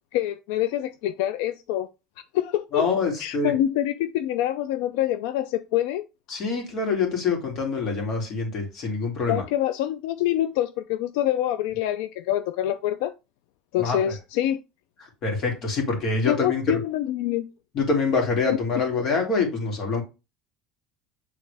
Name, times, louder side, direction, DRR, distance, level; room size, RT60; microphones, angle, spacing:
voice 1, 0.1-1.9 2.3-2.9 3.2-6.0 9.3-13.1 13.7-14.6 16.3-17.5, left 12 dB, 80° left, 0.4 m, -26 dB
voice 2, 2.7-3.5 6.3-9.4 13.8-14.1 15.2-16.8 17.7-20.0, left 4 dB, 40° left, 2.4 m, -25 dB
8.5 x 3.6 x 3.4 m
cardioid pair, 175°, 0 cm